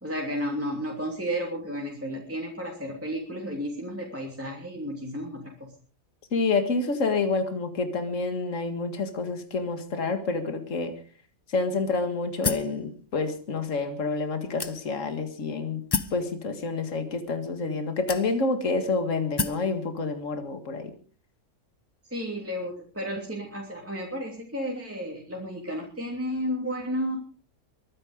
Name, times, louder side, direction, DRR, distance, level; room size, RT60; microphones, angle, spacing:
voice 1, 0.0-5.7 22.1-27.2, equal, 10° right, -1 dB, 2.9 m, -32 dB
voice 2, 6.3-10.9 11.5-15.8 16.1-20.9, left 3 dB, 55° left, 7 dB, 2.2 m, -28 dB
sound 1, 12.4-12.8 13.6-13.7 14.6-15.1 15.9-16.2 17.2-17.3 18.1-18.6 19.4-19.7, left 4 dB, 35° left, 0.4 m, -29 dB
23.0 x 9.9 x 5.1 m, 0.41 s
omnidirectional pair, 1.6 m